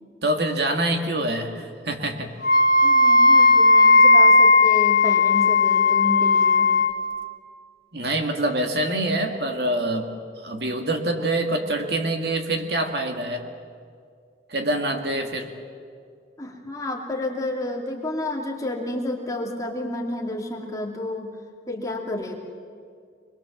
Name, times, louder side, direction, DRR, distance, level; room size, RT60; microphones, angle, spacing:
voice 1, 0.2-2.3 7.9-10.1 10.4-13.4 14.5-15.5, right 1 dB, 60° right, 4 dB, 2.2 m, -25 dB
Wind instrument woodwind instrument, 2.4-7.0, left 3 dB, 50° left, 1.7 m, -16 dB
voice 2, 2.8-6.8 16.4-21.3 21.7-22.4, left 1 dB, 20° left, 0 dB, 2.4 m, -30 dB
25.5 x 21.5 x 7.3 m, 2.2 s
head